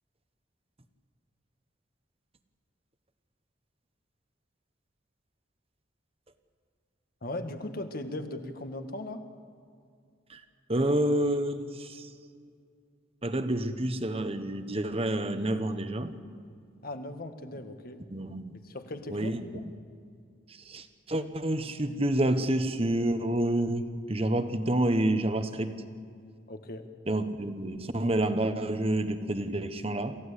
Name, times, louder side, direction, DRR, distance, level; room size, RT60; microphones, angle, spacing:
voice 1, 7.2-9.2 16.8-18.0 18.6-19.6 26.5-26.8, left 1 dB, 50° left, 7 dB, 1.7 m, -38 dB
voice 2, 10.7-12.0 13.2-16.1 18.1-18.5 19.1-19.4 20.7-25.8 27.1-30.2, right 1 dB, 30° right, 9 dB, 1.2 m, -28 dB
27.5 x 15.5 x 8.4 m, 2.3 s
head